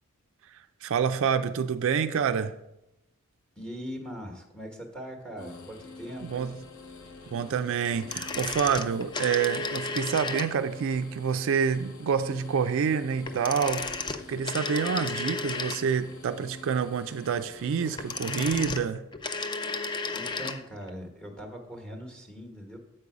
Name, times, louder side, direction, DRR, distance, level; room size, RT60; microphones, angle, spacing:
voice 1, 0.5-2.5 6.2-6.5 7.3-19.0, right 6 dB, 60° right, 0.4 m, -28 dB
voice 2, 3.6-6.5 20.0-22.8, equal, 5° left, 1.1 m, -41 dB
sound 1, 5.4-18.7, left 3 dB, 75° left, 1.0 m, -48 dB
sound 2, 7.9-10.8 13.2-16.1 17.8-20.6 20.9-21.0, left 4 dB, 20° left, 0.3 m, -34 dB
7.6 x 5.3 x 4.8 m
head